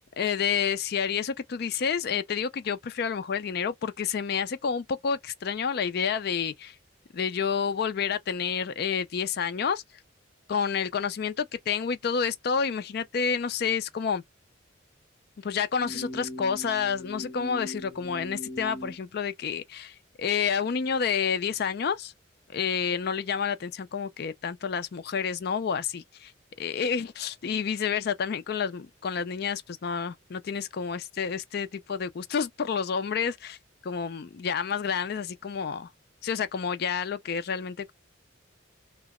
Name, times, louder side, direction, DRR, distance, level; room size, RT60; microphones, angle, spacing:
voice 1, 0.2-6.8 7.1-9.8 10.5-14.2 15.4-22.1 22.5-26.3 26.6-33.6 33.8-35.9 36.2-37.9, left 6 dB, 50° left, 0.4 m, -29 dB
sound 1, 15.7-19.0, left 1 dB, 10° left, 0.8 m, -40 dB
2.9 x 2.1 x 3.5 m
head